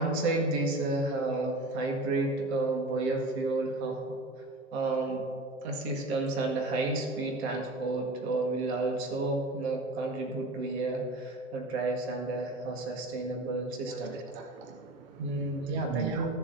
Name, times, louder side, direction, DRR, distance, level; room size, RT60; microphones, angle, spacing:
voice 1, 0.0-4.0 4.7-5.3 5.6-14.2 15.2-16.4, right 2 dB, 55° right, 1 dB, 1.9 m, -31 dB
voice 2, 13.9-15.2 15.6-16.4, right 7 dB, 35° right, 7 dB, 0.4 m, -40 dB
14.0 x 7.4 x 2.7 m, 2.4 s
hypercardioid pair, 105°, 39 cm